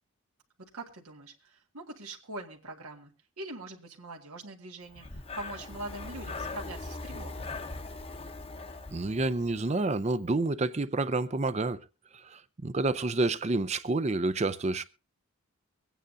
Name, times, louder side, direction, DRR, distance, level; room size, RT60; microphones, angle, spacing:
voice 1, 0.7-7.5, right 2 dB, 85° right, 1.8 m, -43 dB
Breathing, 4.9-9.9, left 3 dB, 25° left, 0.8 m, -40 dB
voice 2, 8.9-11.8 12.1-14.8, right 2 dB, 30° right, 0.5 m, -29 dB
23.5 x 9.1 x 2.6 m
head